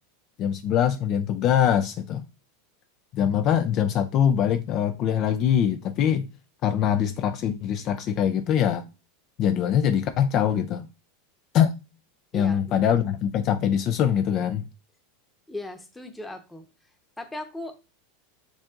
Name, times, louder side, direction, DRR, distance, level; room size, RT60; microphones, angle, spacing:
voice 1, 0.4-2.2 3.1-6.3 6.6-8.8 9.4-10.9 11.5-11.7 12.3-14.6, left 9 dB, 45° left, 0.4 m, -23 dB
voice 2, 15.5-16.6 17.2-17.7, left 2 dB, 10° left, 0.9 m, -37 dB
7.1 x 2.6 x 2.4 m
hypercardioid pair, 110°, 0 cm